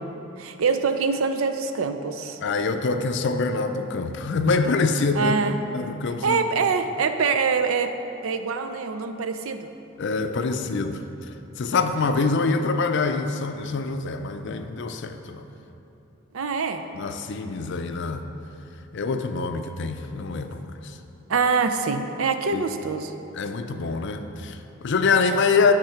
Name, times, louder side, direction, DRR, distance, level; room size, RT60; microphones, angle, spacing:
voice 1, 0.4-2.4 5.1-5.6 6.2-7.9 8.2-9.7 16.3-16.8 21.3-23.1, right 5 dB, 75° right, 8 dB, 0.5 m, -24 dB
voice 2, 2.4-5.3 5.7-6.4 10.0-11.0 11.6-15.4 16.9-18.2 18.9-20.6 22.5-22.6 23.3-25.7, left 4 dB, 55° left, 7 dB, 0.4 m, -25 dB
11.0 x 3.7 x 5.7 m, 2.9 s
head